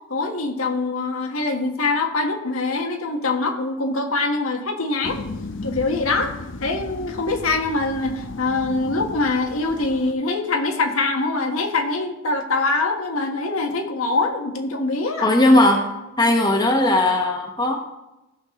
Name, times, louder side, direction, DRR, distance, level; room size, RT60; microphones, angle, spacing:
voice 1, 0.1-5.2 5.6-6.3 6.6-15.3, left 3 dB, 80° left, 3 dB, 1.5 m, -24 dB
sound 1, 5.0-10.1, left 2 dB, 60° left, 0.6 m, -35 dB
voice 2, 15.2-15.9 16.2-17.8, left 1 dB, 20° left, 2 dB, 1.0 m, -17 dB
15.5 x 6.3 x 3.7 m, 0.93 s
head